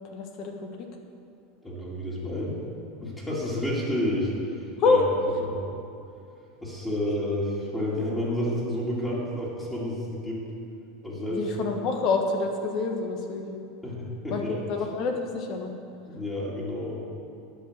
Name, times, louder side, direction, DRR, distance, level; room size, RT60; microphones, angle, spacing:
voice 1, 0.1-0.9 4.8-5.0 11.3-13.7 14.3-15.7, left 4 dB, 50° left, 3 dB, 1.3 m, -27 dB
voice 2, 1.6-2.6 3.0-4.3 4.8-5.0 5.5-5.6 6.6-10.4 11.0-11.4 13.8-14.6 16.1-17.0, left 1 dB, 15° left, -7 dB, 2.5 m, -30 dB
10.0 x 5.7 x 7.4 m, 2.6 s
supercardioid pair, 125°, 0 cm